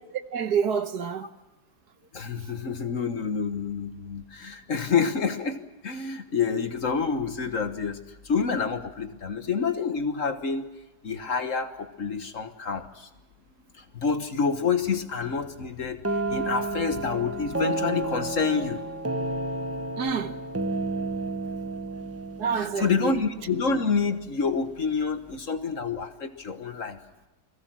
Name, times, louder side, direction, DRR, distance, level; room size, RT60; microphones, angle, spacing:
voice 1, 0.3-1.3 20.0-20.3 22.4-23.2, right 6 dB, 65° right, 1.6 m, -27 dB
voice 2, 2.1-8.0 8.2-10.7 11.0-13.1 13.7-18.9 22.6-27.0, left 5 dB, 50° left, 1.6 m, -28 dB
sound 1, 16.0-23.8, right 2 dB, 15° right, 0.5 m, -31 dB
29.0 x 21.5 x 6.2 m
omnidirectional pair, 1.9 m